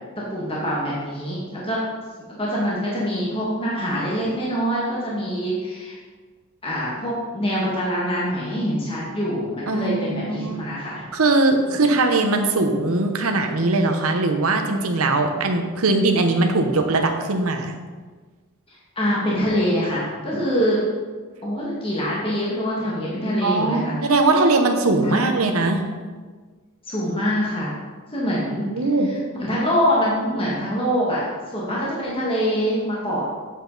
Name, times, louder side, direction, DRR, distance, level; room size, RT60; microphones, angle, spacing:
voice 1, 0.2-1.8 2.4-5.9 6.6-11.0 18.7-20.8 21.4-24.0 25.0-25.4 26.8-27.8 28.1-28.6 29.0-29.2 29.5-33.2, equal, 25° left, -6 dB, 1.7 m, -24 dB
voice 2, 9.7-10.6 11.1-17.7 23.4-25.8 28.6-29.1, right 2 dB, 70° right, 4 dB, 0.9 m, -20 dB
8.4 x 7.5 x 4.0 m, 1.4 s
head